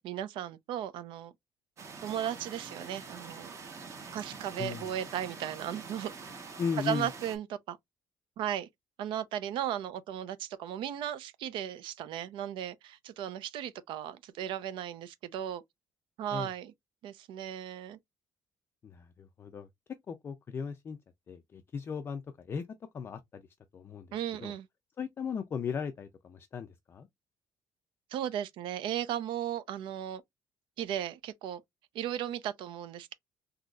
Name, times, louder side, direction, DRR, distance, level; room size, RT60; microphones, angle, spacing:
voice 1, 0.0-1.3 2.0-3.5 4.1-6.1 6.8-7.8 8.4-8.7 9.0-15.6 16.2-16.7 17.0-18.0 24.1-24.7 28.1-30.2 30.8-31.6 31.9-33.1, right 10 dB, 70° right, 0.5 m, -36 dB
sound 1, 1.8-7.4, right 4 dB, 35° right, 0.9 m, -45 dB
voice 2, 4.6-4.9 6.6-7.1 16.3-16.5 18.8-19.7 20.1-21.0 21.3-22.6 22.9-23.4 23.7-24.1 24.4-24.5 25.0-27.1, left 6 dB, 25° left, 0.3 m, -37 dB
3.8 x 2.7 x 2.3 m
cardioid pair, 175°, 9 cm